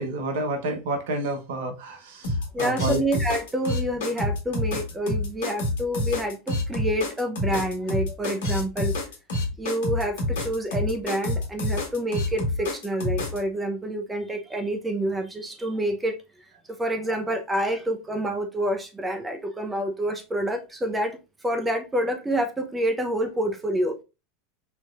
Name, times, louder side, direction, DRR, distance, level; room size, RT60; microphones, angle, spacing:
voice 1, 0.0-3.0, right 2 dB, 70° right, 1.0 m, -29 dB
sound 1, 2.2-13.4, left 2 dB, 70° left, 1.3 m, -27 dB
voice 2, 2.5-9.0 9.6-16.2 16.8-24.0, right 1 dB, 15° right, 0.8 m, -28 dB
4.4 x 3.0 x 2.4 m
hypercardioid pair, 90°, 0 cm